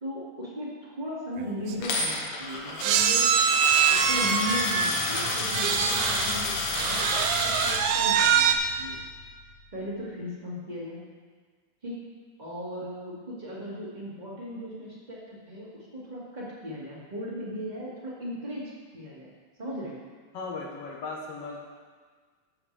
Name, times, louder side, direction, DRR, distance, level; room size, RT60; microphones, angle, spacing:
voice 1, 0.0-3.6 3.9-8.5 8.8-9.0 9.7-11.0 11.8-12.0 12.4-19.3 19.6-20.0, equal, 20° right, -6 dB, 1.3 m, -37 dB
sound 1, 1.4-1.5 1.7-1.9 2.8-6.4 6.8-8.6, right 7 dB, 85° right, 1.7 m, -24 dB
Coin (dropping), 1.8-7.8, left 2 dB, 85° left, 3.0 m, -30 dB
sound 2, 3.7-10.2, left 3 dB, 50° left, 2.1 m, -43 dB
voice 2, 20.3-21.6, left 3 dB, 70° left, -1 dB, 1.5 m, -36 dB
14.5 x 7.4 x 3.3 m, 1.6 s
omnidirectional pair, 3.9 m